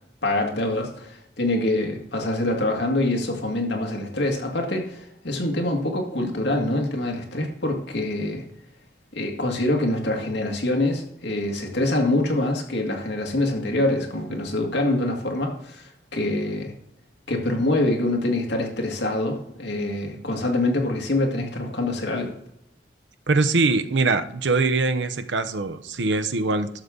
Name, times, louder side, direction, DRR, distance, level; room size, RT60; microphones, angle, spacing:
voice 1, 0.2-8.4 9.1-16.7 17.3-22.3, left 1 dB, 75° left, 2 dB, 2.0 m, -25 dB
voice 2, 23.3-26.7, right 3 dB, 90° right, 10 dB, 0.8 m, -22 dB
11.5 x 7.1 x 3.8 m, 0.78 s
head